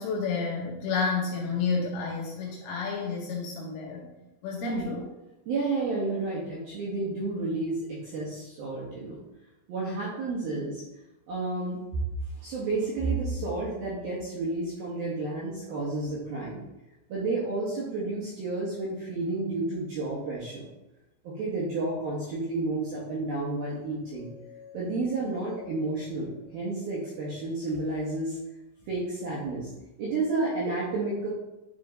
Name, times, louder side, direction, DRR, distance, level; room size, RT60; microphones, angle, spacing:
voice 1, 0.0-4.1 4.4-5.1, left 5 dB, 80° left, -1 dB, 2.7 m, -30 dB
voice 2, 4.6-4.9 5.5-9.2 9.7-10.8 11.3-11.8 12.4-16.6 17.1-20.7 21.2-24.3 24.7-28.4 28.9-29.7 30.0-31.3, right 3 dB, 75° right, -6 dB, 2.2 m, -31 dB
sound 1, 23.8-27.9, left 7 dB, 40° right, 0.9 m, -52 dB
10.5 x 3.5 x 3.8 m, 0.97 s
omnidirectional pair, 5.9 m